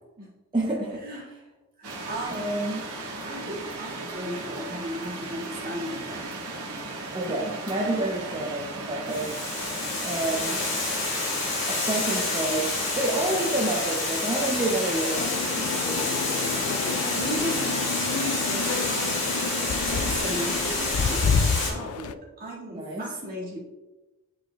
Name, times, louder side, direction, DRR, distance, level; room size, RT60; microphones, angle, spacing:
voice 1, 0.5-1.0 2.3-2.9 7.1-9.3 10.0-10.6 11.7-15.8 22.7-23.0, right 2 dB, 20° right, -3 dB, 0.6 m, -29 dB
voice 2, 1.8-2.4 3.2-6.3 15.8-19.2 19.9-23.6, equal, 40° right, -5 dB, 1.7 m, -36 dB
sound 1, 1.8-21.2, right 2 dB, 90° right, 1.2 m, -37 dB
Water, 9.1-21.7, left 3 dB, 55° left, 2.0 m, -28 dB
sound 2, 15.2-22.1, left 5 dB, 80° left, 0.3 m, -29 dB
8.7 x 4.8 x 2.2 m, 1.1 s
head